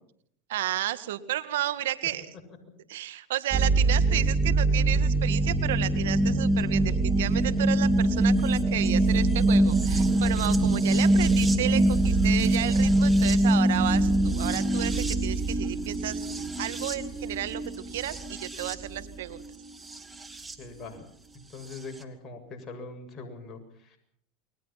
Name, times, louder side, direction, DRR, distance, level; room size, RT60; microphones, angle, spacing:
voice 1, 0.5-2.3 2.9-16.3 16.6-17.6 17.9-19.4, right 13 dB, 80° right, 12 dB, 1.8 m, -32 dB
sound 1, 3.5-20.5 21.7-21.8, right 2 dB, 15° right, 3.1 m, -24 dB
voice 2, 20.6-21.1 21.3-24.0, left 3 dB, 30° left, 3 dB, 7.3 m, -42 dB
29.5 x 21.5 x 5.9 m, 0.67 s
hypercardioid pair, 100°, 0 cm